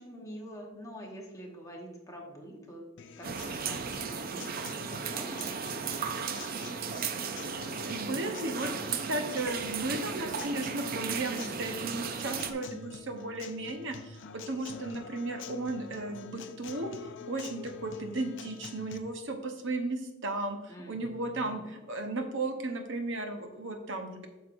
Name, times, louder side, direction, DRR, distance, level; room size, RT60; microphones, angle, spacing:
voice 1, 0.0-6.2 20.7-21.7, equal, 15° left, -1 dB, 1.1 m, -46 dB
Acoustic guitar, 3.0-19.0, left 5 dB, 55° left, 0.5 m, -47 dB
sound 1, 3.2-12.5, right 6 dB, 45° right, 0.4 m, -35 dB
voice 2, 7.4-16.9 17.3-24.2, right 2 dB, 60° right, 5 dB, 0.9 m, -35 dB
8.1 x 6.1 x 2.6 m, 1.1 s
head